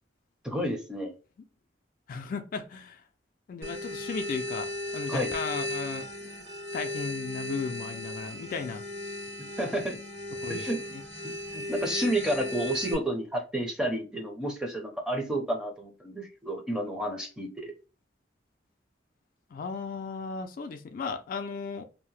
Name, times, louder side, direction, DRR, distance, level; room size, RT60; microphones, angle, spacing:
voice 1, 0.4-1.1 5.1-5.3 9.4-10.0 10.5-10.8 11.2-17.7, right 1 dB, 5° right, 0.5 m, -31 dB
voice 2, 2.1-3.0 3.5-6.1 6.7-8.8 10.4-10.6 10.9-11.0 19.5-21.8, left 5 dB, 50° left, 0.3 m, -35 dB
sound 1, 3.6-12.9, left 1 dB, 70° right, 1.2 m, -36 dB
2.7 x 2.0 x 3.1 m
head